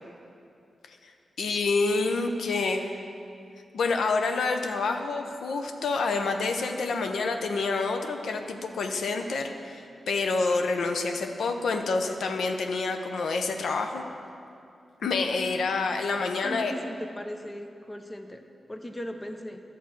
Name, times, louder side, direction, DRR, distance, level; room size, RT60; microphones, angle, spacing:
voice 1, 1.4-3.0 3.7-14.0 15.0-16.7, left 3 dB, 85° left, 5 dB, 0.6 m, -28 dB
voice 2, 16.3-19.6, left 1 dB, 20° left, 6 dB, 0.6 m, -38 dB
11.5 x 4.1 x 7.5 m, 2.5 s
wide cardioid pair, 100°, 0 cm